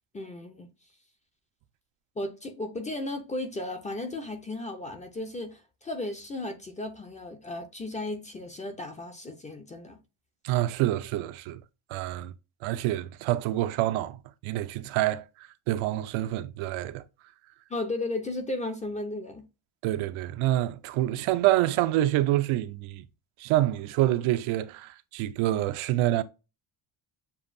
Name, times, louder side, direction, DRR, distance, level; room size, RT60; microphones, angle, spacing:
voice 1, 0.1-0.7 2.2-10.0 17.7-19.4, left 2 dB, 15° left, 0.4 m, -35 dB
voice 2, 10.4-11.6 11.9-12.3 12.6-15.2 15.7-17.0 19.8-23.0 23.4-26.2, right 15 dB, 80° right, 0.6 m, -27 dB
7.0 x 2.6 x 2.5 m
cardioid pair, 165°, 49 cm